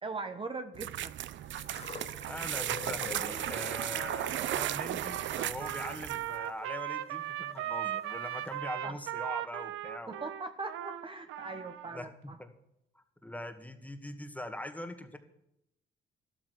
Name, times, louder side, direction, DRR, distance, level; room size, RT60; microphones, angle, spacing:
voice 1, 0.0-1.1 8.8-8.9 10.1-12.4, right 3 dB, 25° right, 8 dB, 1.2 m, -40 dB
sound 1, 0.7-6.3, right 12 dB, 70° right, 0.7 m, -35 dB
sound 2, 1.6-7.6 8.5-8.6, left 4 dB, 30° left, 1.6 m, -48 dB
voice 2, 2.3-10.3 11.9-12.5 13.0-15.2, left 1 dB, 5° left, 8 dB, 2.1 m, -42 dB
Trumpet, 3.7-12.0, right 12 dB, 90° right, 1.1 m, -38 dB
12.5 x 12.5 x 6.8 m, 0.78 s
cardioid pair, 90°, 20 cm